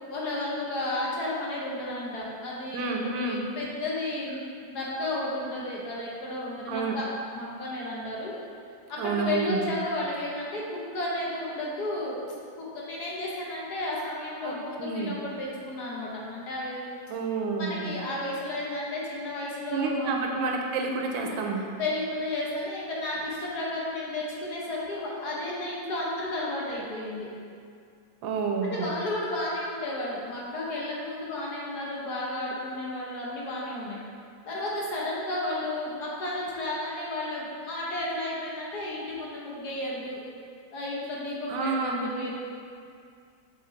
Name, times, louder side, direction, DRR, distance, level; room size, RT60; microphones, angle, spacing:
voice 1, 0.0-7.1 7.3-8.3 8.9-12.2 12.6-16.9 17.6-20.4 21.1-21.4 21.8-27.3 28.6-34.0 34.5-40.2 40.7-42.4, left 1 dB, 60° left, -5 dB, 1.5 m, -33 dB
voice 2, 2.7-3.4 6.7-7.0 9.0-9.7 14.4-15.2 17.1-17.9 19.7-21.6 28.2-28.9 41.5-42.1, right 4 dB, 85° right, 2 dB, 1.4 m, -29 dB
6.5 x 3.8 x 4.0 m, 2.3 s
omnidirectional pair, 2.1 m